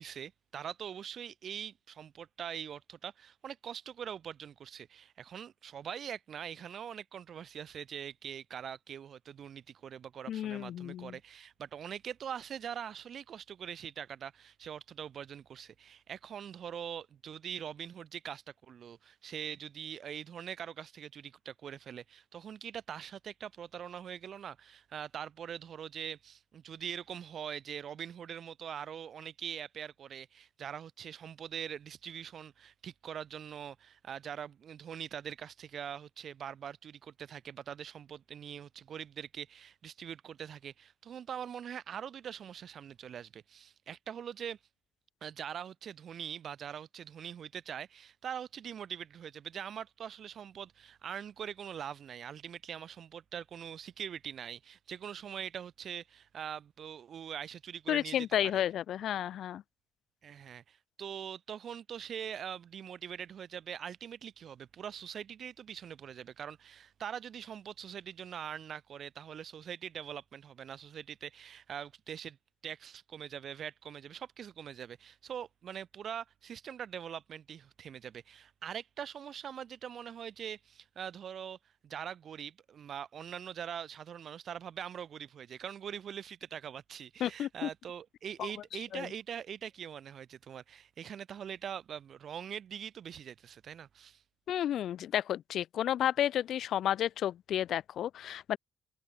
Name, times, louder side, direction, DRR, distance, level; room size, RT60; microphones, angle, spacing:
voice 1, 0.0-44.6 45.2-58.6 60.2-72.4 72.6-81.6 81.8-94.2, right 8 dB, 60° right, 5.6 m, -43 dB
voice 2, 10.3-11.1 57.9-59.6 87.2-87.7 88.4-88.5 88.9-89.1 94.5-98.6, left 11 dB, 70° left, 1.7 m, -32 dB
cardioid pair, 90°, 0 cm